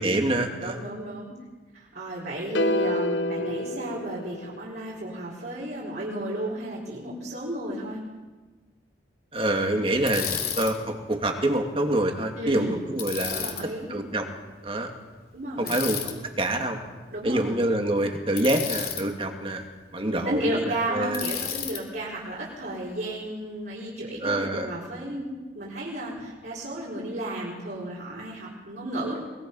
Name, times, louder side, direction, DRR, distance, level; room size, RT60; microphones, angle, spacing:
voice 1, 0.0-0.8 9.3-10.3 10.6-13.5 13.9-14.2 14.6-14.9 15.6-16.8 17.2-19.6 19.9-21.2 24.2-24.7, right 1 dB, 30° right, 4 dB, 2.2 m, -26 dB
voice 2, 0.6-1.3 1.7-8.0 12.4-12.9 13.3-13.9 15.3-15.7 17.1-17.5 20.1-25.3 25.5-29.2, right 1 dB, 55° right, -6 dB, 4.8 m, -33 dB
sound 1, 2.5-4.9, left 1 dB, 70° left, 0.7 m, -28 dB
Bicycle, 10.1-10.7 13.0-13.6 15.7-16.1 18.4-19.0 21.1-21.8, left 9 dB, 50° left, 2.8 m, -31 dB
23.0 x 21.0 x 5.6 m, 1.3 s
head